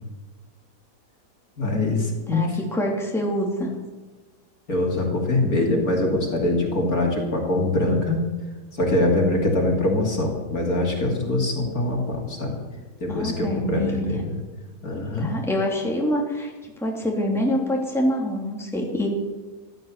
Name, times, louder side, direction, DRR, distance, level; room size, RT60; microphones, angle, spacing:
voice 1, 1.6-2.6 4.7-8.2 8.7-12.5 13.0-14.4 14.8-15.4, left 2 dB, 55° left, 0 dB, 3.1 m, -23 dB
voice 2, 2.3-3.7 13.1-14.2 15.2-19.1, equal, ahead, -1 dB, 2.7 m, -25 dB
15.0 x 12.0 x 7.2 m, 1.3 s
omnidirectional pair, 1.8 m